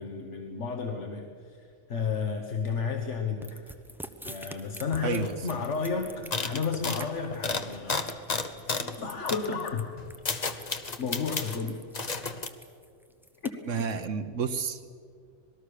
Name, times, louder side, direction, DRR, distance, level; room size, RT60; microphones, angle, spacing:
voice 1, 0.0-3.7 4.2-8.1 8.6-10.0 11.0-11.8 13.4-13.5, left 5 dB, 75° left, 3 dB, 1.7 m, -32 dB
sound 1, 3.4-14.1, equal, ahead, 0.7 m, -46 dB
voice 2, 5.0-5.3 13.7-14.9, right 5 dB, 85° right, 7 dB, 1.4 m, -30 dB
sound 2, 5.2-5.8 6.3-9.0 9.3-9.5 10.0-11.6 11.9-12.5, left 4 dB, 35° left, 1.1 m, -32 dB
26.5 x 19.5 x 6.6 m, 2.2 s
omnidirectional pair, 1.2 m